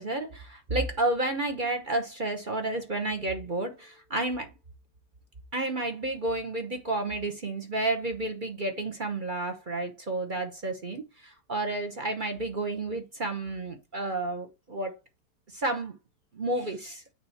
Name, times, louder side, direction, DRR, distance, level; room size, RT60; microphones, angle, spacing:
voice 1, 0.0-4.5 5.5-14.9 15.5-16.0 16.3-17.0, right 2 dB, 40° right, 0.8 m, -31 dB
8.9 x 3.1 x 4.2 m
omnidirectional pair, 2.2 m